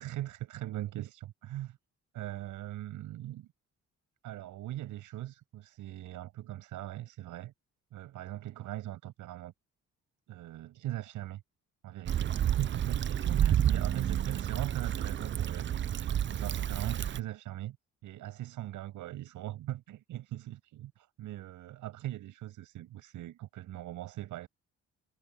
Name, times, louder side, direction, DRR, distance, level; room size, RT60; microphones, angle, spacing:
voice 1, 0.0-1.8 2.1-3.5 4.2-7.5 7.9-9.5 10.3-11.4 11.8-17.8 18.0-24.5, right 14 dB, 85° right, 7.0 m, -40 dB
Stream / Traffic noise roadway noise / Trickle dribble, 12.1-17.2, right 10 dB, 40° right, 0.5 m, -30 dB
cardioid pair, 90°, 30 cm